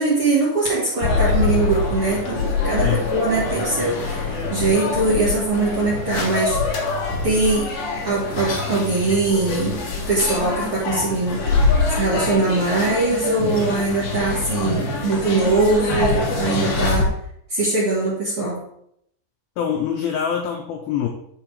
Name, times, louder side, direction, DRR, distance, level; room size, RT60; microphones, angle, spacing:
voice 1, 0.0-6.6 7.2-7.7 8.0-17.1 17.5-18.6, right 3 dB, 50° right, -6 dB, 1.7 m, -22 dB
sound 1, 1.0-17.0, left 3 dB, 60° left, 1.8 m, -24 dB
voice 2, 2.8-3.1 19.6-21.1, left 8 dB, 90° left, 3 dB, 2.1 m, -24 dB
11.0 x 3.7 x 4.8 m, 0.74 s
omnidirectional pair, 5.1 m